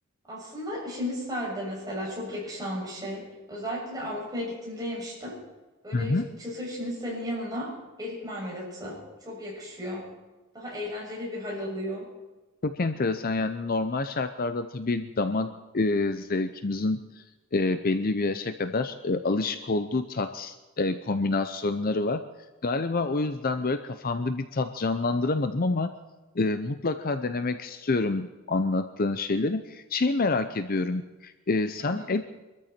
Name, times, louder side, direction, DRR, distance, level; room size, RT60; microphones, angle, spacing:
voice 1, 0.3-5.4 5.8-9.0 9.3-10.1 10.5-12.1 31.8-32.1, equal, 15° right, -4 dB, 7.0 m, -34 dB
voice 2, 5.9-6.3 12.6-15.5 15.7-17.2 17.5-22.2 22.6-25.9 26.3-32.2, left 3 dB, 40° left, 10 dB, 0.6 m, -27 dB
24.0 x 13.5 x 4.4 m, 1.1 s
head